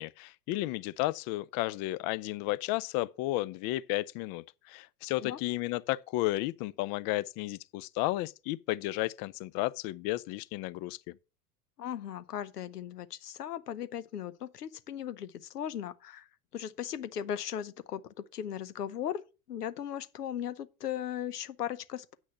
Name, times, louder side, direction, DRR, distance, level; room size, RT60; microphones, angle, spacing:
voice 1, 0.0-11.0, left 18 dB, 50° left, 0.7 m, -33 dB
voice 2, 11.8-18.0 18.3-19.2 19.5-22.1, left 10 dB, 85° left, 0.9 m, -37 dB
8.9 x 6.3 x 5.6 m
hypercardioid pair, 80°, 46 cm